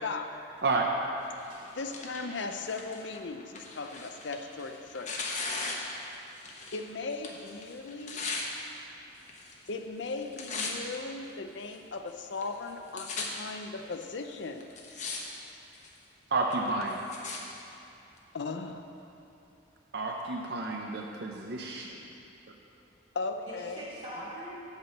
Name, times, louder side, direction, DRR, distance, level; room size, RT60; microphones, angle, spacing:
Tearing, 1.4-6.8 7.1-8.5 9.2-9.7 10.0-11.0 11.6-11.7 12.4-12.5 12.7-13.3 14.0-14.1 14.6-15.2 15.5-16.0 16.5-17.4 18.2-18.3, left 4 dB, 35° left, 1.0 m, -38 dB
voice 1, 1.7-5.1 6.7-8.2 9.7-14.7 18.3-18.9 23.1-23.9, left 3 dB, 65° left, 6 dB, 0.5 m, -37 dB
voice 2, 8.7-9.2 9.6-9.7 13.1-13.3 23.5-24.6, equal, 25° right, -8 dB, 2.5 m, -44 dB
voice 3, 16.3-17.0 19.9-21.9, right 3 dB, 55° right, 1 dB, 0.7 m, -30 dB
8.1 x 6.0 x 7.8 m, 2.8 s
head